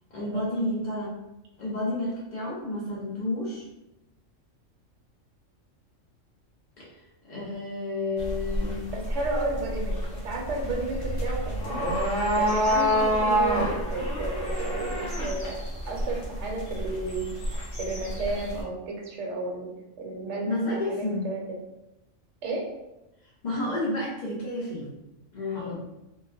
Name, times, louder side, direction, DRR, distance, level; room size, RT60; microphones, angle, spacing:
voice 1, 0.1-1.1 1.6-3.6 6.8-7.0 7.3-8.8 20.4-21.3 23.4-25.0 25.3-25.8, left 2 dB, 40° left, -4 dB, 0.8 m, -30 dB
sound 1, 8.2-18.6, equal, 60° left, 1.4 m, -28 dB
voice 2, 8.9-10.0 10.2-11.9 12.3-15.6 15.9-17.3 17.8-19.7 20.0-21.6 22.4-22.6 25.5-25.8, right 3 dB, 65° right, 0 dB, 1.0 m, -32 dB
3.7 x 2.2 x 2.7 m, 0.93 s
omnidirectional pair, 1.4 m